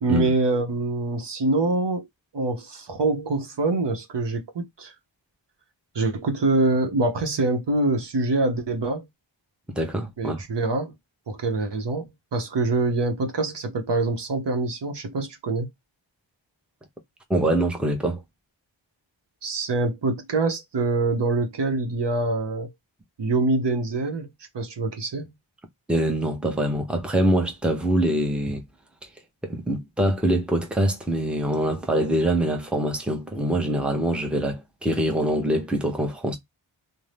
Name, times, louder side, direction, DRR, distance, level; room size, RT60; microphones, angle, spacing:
voice 1, 0.0-2.1 2.3-4.9 5.9-9.1 10.2-10.9 11.3-15.7 19.4-22.7 23.2-24.3 24.5-25.3, right 2 dB, 60° right, 0.8 m, -25 dB
voice 2, 9.7-10.4 17.3-18.2 25.9-28.6 29.4-36.4, right 1 dB, ahead, 0.7 m, -24 dB
2.6 x 2.1 x 3.2 m
wide cardioid pair, 55°, 47 cm